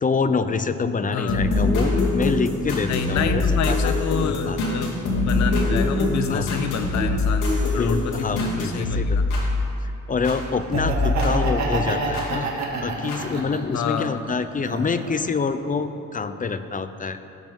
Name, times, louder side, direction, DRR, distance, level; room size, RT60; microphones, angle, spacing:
voice 1, 0.0-4.0 4.2-4.6 6.3-6.5 7.6-9.5 9.8-12.5 12.8-17.2, left 4 dB, 25° left, 11 dB, 0.6 m, -26 dB
voice 2, 1.1-1.5 2.9-9.2 13.7-14.3, left 7 dB, 65° left, 8 dB, 0.9 m, -28 dB
sound 1, 1.3-10.4 10.7-12.3 13.1-13.2, left 2 dB, 90° left, 2.5 m, -24 dB
Laughter, 10.6-13.8 14.2-15.3, right 3 dB, 65° right, 1.8 m, -28 dB
17.0 x 7.9 x 3.6 m, 2.8 s
cardioid pair, 90°, 30 cm